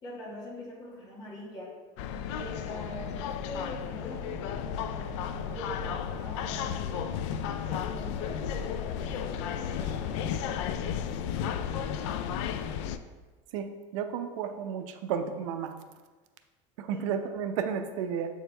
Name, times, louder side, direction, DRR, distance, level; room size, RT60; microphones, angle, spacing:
voice 1, 0.0-1.7 2.3-7.1 7.7-12.1 16.9-17.0, left 1 dB, 25° left, -5 dB, 1.8 m, -44 dB
sound 1, 2.0-13.0, left 8 dB, 70° left, 0.4 m, -33 dB
voice 2, 13.9-15.7 16.8-18.3, right 7 dB, 85° right, 7 dB, 0.6 m, -32 dB
7.8 x 4.6 x 3.3 m, 1.3 s
cardioid pair, 165°, 16 cm